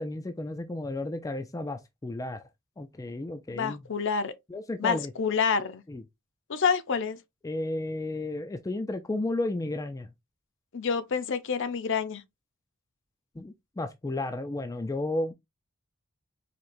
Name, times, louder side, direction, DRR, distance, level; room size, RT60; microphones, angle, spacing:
voice 1, 0.0-2.4 2.8-3.8 4.5-5.1 5.9-6.0 7.4-10.1 13.4-15.3, left 2 dB, 15° left, 0.3 m, -33 dB
voice 2, 3.5-4.3 4.8-5.8 6.5-7.2 10.7-12.2, left 6 dB, 55° left, 0.6 m, -28 dB
4.4 x 2.8 x 2.6 m
head